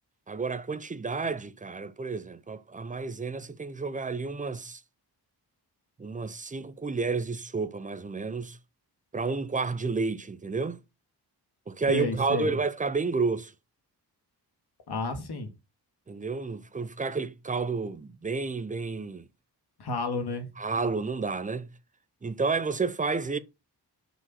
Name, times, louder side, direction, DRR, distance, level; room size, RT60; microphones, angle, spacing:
voice 1, 0.3-4.8 6.0-8.6 9.1-10.8 11.7-13.5 16.1-19.3 20.6-21.7 22.2-23.4, right 4 dB, 20° right, 0.5 m, -30 dB
voice 2, 11.9-12.5 14.9-15.5 19.8-20.5, left 3 dB, 70° left, 1.9 m, -31 dB
6.0 x 5.2 x 5.9 m
wide cardioid pair, 165°, 41 cm